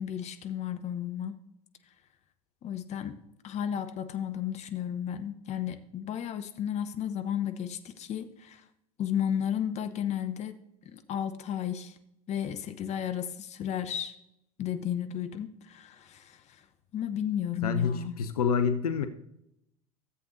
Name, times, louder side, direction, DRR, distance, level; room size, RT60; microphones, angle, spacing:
voice 1, 0.0-1.4 2.6-3.2 3.4-8.6 9.0-10.6 10.9-12.0 12.3-14.1 14.6-16.6 16.9-18.1, left 9 dB, 35° left, 10 dB, 0.9 m, -33 dB
voice 2, 17.6-19.1, left 6 dB, 75° left, 9 dB, 0.7 m, -27 dB
14.0 x 7.9 x 2.7 m, 0.80 s
figure-of-eight pair, 80°, 19 cm